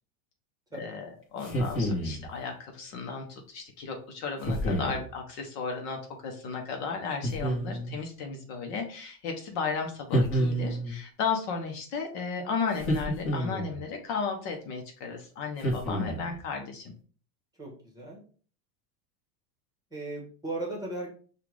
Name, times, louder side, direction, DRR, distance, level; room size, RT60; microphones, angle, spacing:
voice 1, 0.7-16.9, left 5 dB, 50° left, 2 dB, 0.9 m, -34 dB
sound 1, 1.4-2.3 4.4-5.0 7.2-8.0 10.1-11.0 12.8-13.8 15.6-16.4, equal, 25° left, 1.3 m, -29 dB
voice 2, 17.6-18.2 19.9-21.1, right 2 dB, 5° right, -3 dB, 1.2 m, -37 dB
5.5 x 2.5 x 3.2 m, 0.43 s
supercardioid pair, 150°, 50 cm